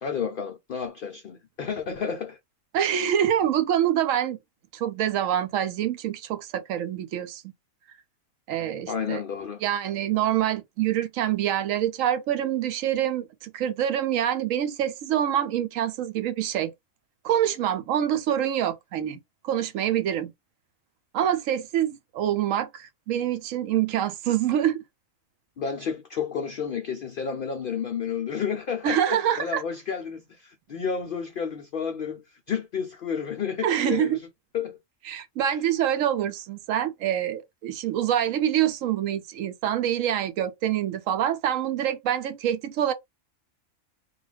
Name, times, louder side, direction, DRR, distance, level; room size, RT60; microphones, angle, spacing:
voice 1, 0.0-2.4 8.9-9.6 25.6-34.2 34.5-34.8 35.5-35.6, left 6 dB, 75° left, 0.5 m, -31 dB
voice 2, 2.7-4.4 4.7-7.5 8.5-9.2 9.6-16.7 17.2-20.3 21.1-24.8 28.8-29.6 33.6-34.2 35.1-42.9, right 10 dB, 75° right, 0.9 m, -26 dB
2.5 x 2.3 x 3.1 m
omnidirectional pair, 1.4 m